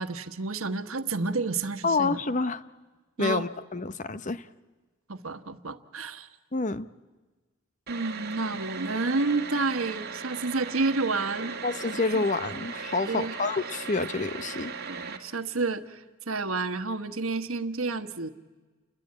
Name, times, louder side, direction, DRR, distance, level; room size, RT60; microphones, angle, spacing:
voice 1, 0.0-2.2 3.2-3.4 5.1-6.3 7.9-11.6 12.1-12.3 13.1-13.5 14.8-18.3, right 3 dB, 90° right, 1.4 m, -30 dB
voice 2, 1.8-2.6 3.2-4.5 6.5-6.9 11.6-14.7, left 3 dB, 35° left, 0.8 m, -28 dB
sound 1, 7.9-15.2, right 5 dB, 50° right, 2.3 m, -38 dB
29.5 x 22.0 x 8.7 m
head